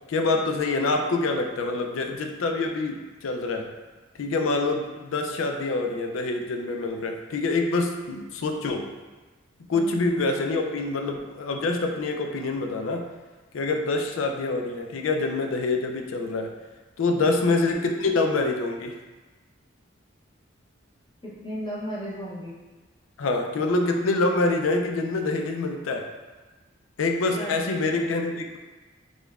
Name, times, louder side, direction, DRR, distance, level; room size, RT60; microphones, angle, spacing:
voice 1, 0.1-3.7 4.2-8.9 9.7-13.1 13.5-16.5 17.0-18.9 23.2-26.1 27.0-28.6, left 3 dB, 90° left, 4 dB, 0.4 m, -26 dB
voice 2, 9.7-10.0 17.2-17.4 21.2-22.6 27.3-28.1, equal, 25° left, -6 dB, 0.7 m, -36 dB
5.0 x 2.2 x 2.3 m, 1.2 s
head